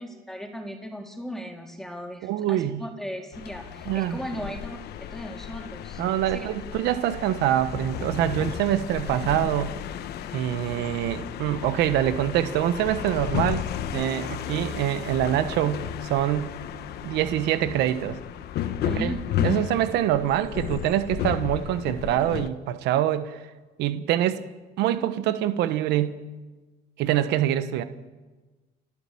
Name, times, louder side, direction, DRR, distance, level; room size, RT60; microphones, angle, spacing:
voice 1, 0.0-6.0 6.3-6.5 18.8-19.8, equal, ahead, 2 dB, 4.0 m, -37 dB
voice 2, 2.2-2.8 3.9-4.2 6.0-9.7 10.3-16.6 17.0-18.2 18.8-19.1 19.4-23.5 23.8-24.4 24.8-26.2 27.0-27.8, right 12 dB, 85° right, 11 dB, 1.2 m, -25 dB
sound 1, 3.3-22.5, left 10 dB, 75° left, 1.3 m, -33 dB
29.5 x 12.0 x 8.6 m, 1.2 s
cardioid pair, 110°, 17 cm